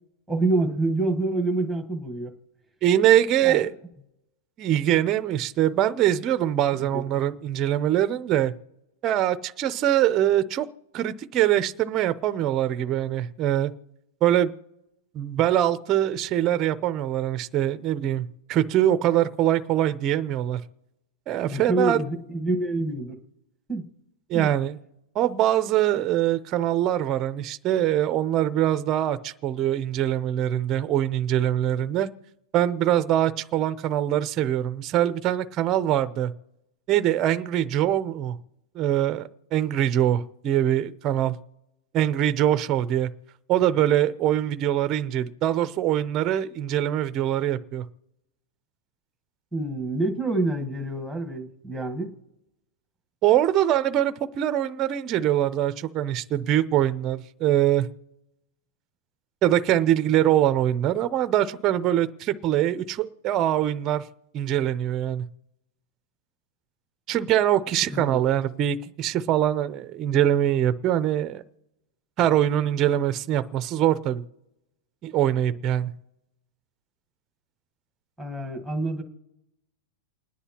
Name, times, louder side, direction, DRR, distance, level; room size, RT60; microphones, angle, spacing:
voice 1, 0.3-2.3 3.4-3.7 6.7-7.3 21.5-23.2 23.7-23.9 24.3-24.5 49.5-52.1 67.9-68.2 78.2-79.0, right 2 dB, ahead, 1.3 m, -27 dB
voice 2, 2.8-3.7 4.6-8.5 9.0-10.7 10.9-13.7 14.2-14.5 15.1-20.6 21.3-22.0 24.3-24.8 25.2-32.1 32.5-36.3 36.9-38.4 38.7-41.4 41.9-43.1 43.5-47.8 53.2-57.9 59.4-64.0 64.3-65.2 67.1-71.4 72.2-74.2 75.0-75.9, right 12 dB, 25° right, 0.5 m, -23 dB
29.0 x 10.0 x 2.9 m
supercardioid pair, 170°, 0 cm